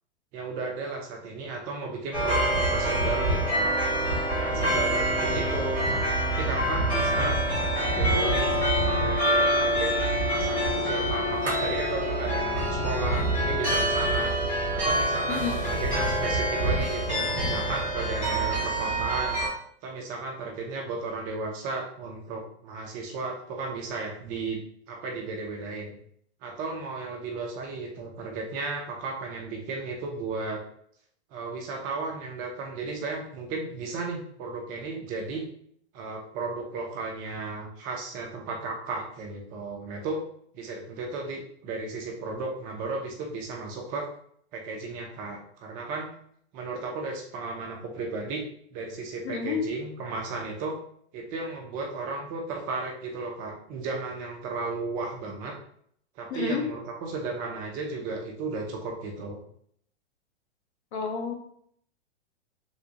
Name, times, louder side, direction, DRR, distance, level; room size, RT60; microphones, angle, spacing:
voice 1, 0.3-3.7 4.3-5.8 6.2-8.5 9.0-9.9 10.3-14.3 14.7-19.4 19.8-25.9 26.4-30.6 31.3-35.4 35.9-40.2 40.5-44.1 44.5-46.1 46.5-48.4 48.7-50.7 51.1-55.6 56.2-59.4, right 3 dB, 25° right, 1 dB, 0.4 m, -34 dB
sound 1, 2.1-19.5, right 1 dB, 5° left, 1.3 m, -26 dB
voice 2, 15.3-15.6 49.2-49.6 56.3-56.6 60.9-61.3, left 6 dB, 70° left, 3 dB, 0.9 m, -30 dB
3.3 x 2.5 x 2.8 m, 0.65 s
hypercardioid pair, 135°, 34 cm